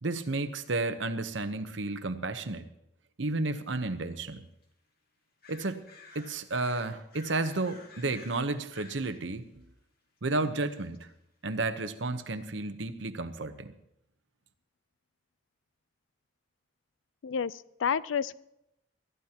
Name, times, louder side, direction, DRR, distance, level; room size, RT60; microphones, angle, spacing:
voice 1, 0.0-2.7 3.2-4.4 5.5-5.8 6.1-9.7 10.2-11.1 11.4-13.7, right 2 dB, 70° right, 10 dB, 0.9 m, -32 dB
sound 1, 3.7-3.8 4.1-4.2 4.6-4.7 5.4-9.2 10.3-11.0, left 4 dB, 50° left, 1.9 m, -53 dB
voice 2, 17.2-18.4, left 7 dB, 85° left, 19 dB, 0.4 m, -30 dB
21.5 x 13.5 x 2.9 m, 0.83 s
head